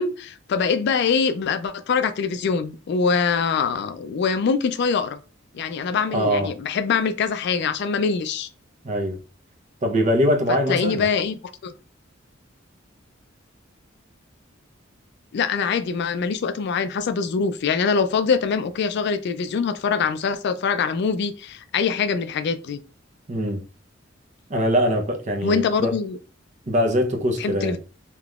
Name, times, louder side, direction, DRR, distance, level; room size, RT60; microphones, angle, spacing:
voice 1, 0.0-5.2 5.5-8.5 10.7-11.7 15.3-22.8 25.4-26.2 27.4-27.8, left 5 dB, 60° left, 0.3 m, -23 dB
voice 2, 6.1-6.6 8.8-9.2 9.8-11.1 23.3-23.7 24.5-25.9 26.7-27.8, equal, 40° right, 0.7 m, -22 dB
3.5 x 2.9 x 2.3 m
head